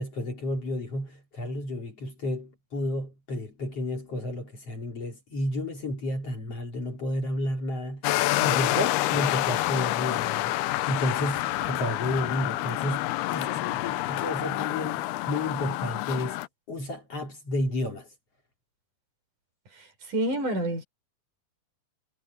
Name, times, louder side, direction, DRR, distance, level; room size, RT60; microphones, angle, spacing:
voice 1, 0.0-8.0 8.3-16.4 16.7-18.1, left 1 dB, 40° left, 4.0 m, -31 dB
sound 1, 8.0-16.5, left 17 dB, 90° left, 2.7 m, -28 dB
voice 2, 19.7-20.8, right 1 dB, 55° right, 7.1 m, -29 dB
omnidirectional pair, 4.4 m